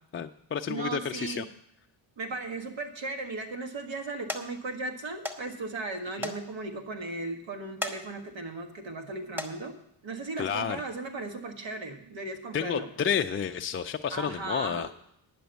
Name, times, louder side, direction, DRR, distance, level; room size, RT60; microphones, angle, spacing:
voice 1, 0.1-1.5 6.2-6.3 10.4-10.8 12.5-14.9, left 7 dB, 30° left, 5 dB, 0.4 m, -30 dB
voice 2, 0.7-1.4 2.2-9.8 10.0-12.9 14.1-14.9, right 3 dB, 70° right, 5 dB, 1.7 m, -36 dB
sound 1, 3.3-3.4 3.8-4.0 4.3-4.5 5.2-5.4 5.7-5.8 6.2-6.4 6.8-6.9 7.7-8.0 8.5-8.7 9.2-9.5 10.5-10.6 11.1-11.2, left 1 dB, 5° right, 1.2 m, -35 dB
10.0 x 6.2 x 8.0 m, 0.74 s
cardioid pair, 75°, 47 cm